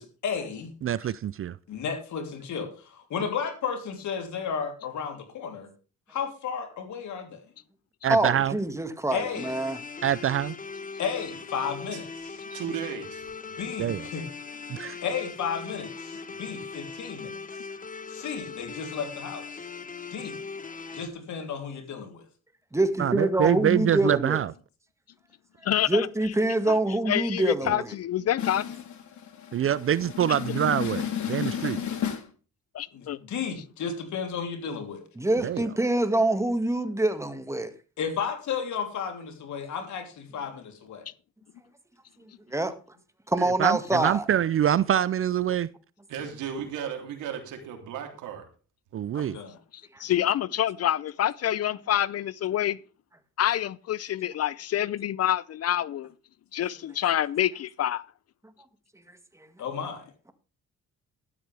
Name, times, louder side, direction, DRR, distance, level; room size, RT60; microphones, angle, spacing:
voice 1, 0.0-0.7 1.7-5.7 6.1-7.3 9.1-9.6 11.0-12.4 13.5-14.3 15.0-17.4 18.1-19.6 20.1-20.4 20.9-22.2 28.4-28.8 29.1-32.3 32.9-35.0 38.0-41.0 49.1-49.6 59.6-60.0, left 7 dB, 70° left, 3.4 m, -33 dB
voice 2, 0.8-1.6 8.0-8.6 10.0-10.5 13.8-14.1 14.7-15.0 23.0-24.5 27.7-27.8 29.5-31.8 35.4-35.7 43.6-45.7 48.9-49.4, right 10 dB, 45° right, 0.5 m, -25 dB
voice 3, 8.1-9.8 22.7-24.4 25.9-27.9 35.2-37.7 42.5-42.7 43.3-44.2, right 1 dB, 10° right, 1.9 m, -25 dB
sound 1, 9.3-21.1, left 5 dB, 25° left, 1.1 m, -40 dB
voice 4, 12.5-13.3 46.1-48.5, right 8 dB, 90° right, 3.2 m, -35 dB
voice 5, 25.6-26.3 26.7-26.8 27.1-28.6 32.7-33.2 49.7-52.8 53.4-56.1 56.5-58.1, left 11 dB, 55° left, 0.5 m, -27 dB
12.5 x 12.0 x 3.4 m
cardioid pair, 90°, 30 cm